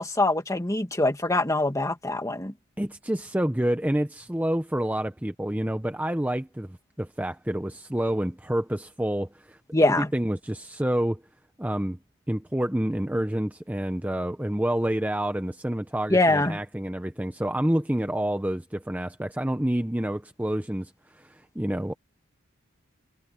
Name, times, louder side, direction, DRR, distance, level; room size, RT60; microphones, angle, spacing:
voice 1, 0.0-2.5 9.7-10.1 16.1-16.6, left 2 dB, 15° left, 1.9 m, -23 dB
voice 2, 2.8-9.6 10.0-11.2 11.6-12.0 12.3-22.0, right 1 dB, 10° right, 0.7 m, -28 dB
head